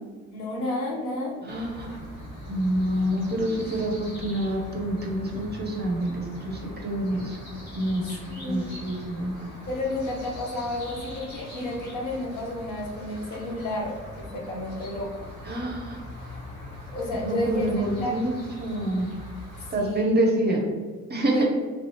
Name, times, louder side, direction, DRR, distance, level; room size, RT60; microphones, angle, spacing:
voice 1, 0.3-1.4 8.3-8.8 9.7-15.2 16.9-18.2 19.7-20.1 21.3-21.4, left 1 dB, 50° left, -2 dB, 0.9 m, -31 dB
voice 2, 1.4-2.0 2.5-7.4 7.7-8.2 8.5-9.3 15.4-16.0 17.2-18.3 18.6-19.1 19.7-20.6 21.1-21.4, right 1 dB, 25° right, 0 dB, 0.7 m, -27 dB
sound 1, 1.5-19.7, left 1 dB, 75° left, 1.2 m, -41 dB
3.2 x 2.7 x 3.0 m, 1.5 s
figure-of-eight pair, 40°, 39 cm